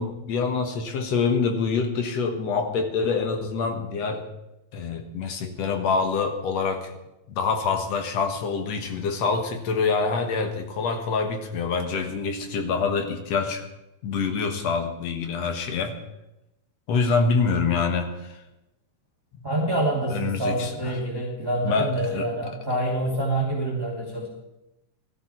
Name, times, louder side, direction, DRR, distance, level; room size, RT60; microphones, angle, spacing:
voice 1, 0.0-4.2 4.7-6.9 7.3-13.7 14.0-15.9 16.9-18.4 20.1-21.0 21.6-22.3, left 5 dB, 65° left, 6 dB, 2.4 m, -26 dB
voice 2, 19.4-24.3, right 1 dB, 10° right, -5 dB, 2.3 m, -26 dB
18.0 x 14.0 x 4.4 m, 0.93 s
omnidirectional pair, 3.4 m